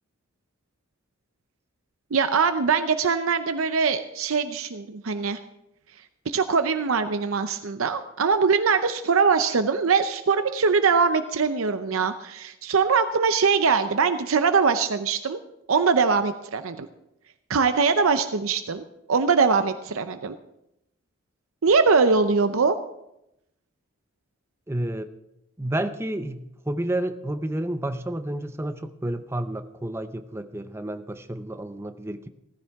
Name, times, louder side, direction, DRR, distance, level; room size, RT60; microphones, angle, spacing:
voice 1, 2.1-5.4 6.3-15.4 15.7-16.9 17.5-20.4 21.6-22.7, right 5 dB, 75° right, 9 dB, 0.6 m, -22 dB
voice 2, 24.7-25.1 25.6-32.3, right 1 dB, 10° right, 9 dB, 0.6 m, -30 dB
16.5 x 14.5 x 3.6 m, 0.85 s
head